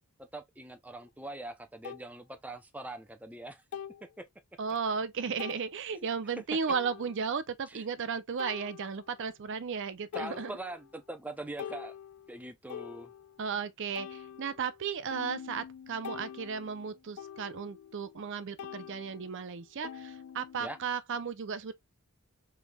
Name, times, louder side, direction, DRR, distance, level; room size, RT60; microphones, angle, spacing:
voice 1, 0.2-3.6 4.2-4.3 5.9-6.1 7.7-7.8 10.1-11.9 12.3-13.1 20.6-20.8, right 2 dB, 5° right, 0.5 m, -42 dB
sound 1, 1.0-1.1 1.8-2.1 3.7-4.1 4.7-4.8 5.4-5.7 6.7-7.3 8.4-9.2 9.7-9.8 10.1-11.0 11.3-13.5 14.0-18.3 18.6-20.9, left 8 dB, 65° left, 0.3 m, -45 dB
voice 2, 4.6-10.5 13.4-21.7, right 6 dB, 55° right, 0.5 m, -35 dB
5.2 x 3.3 x 2.2 m
head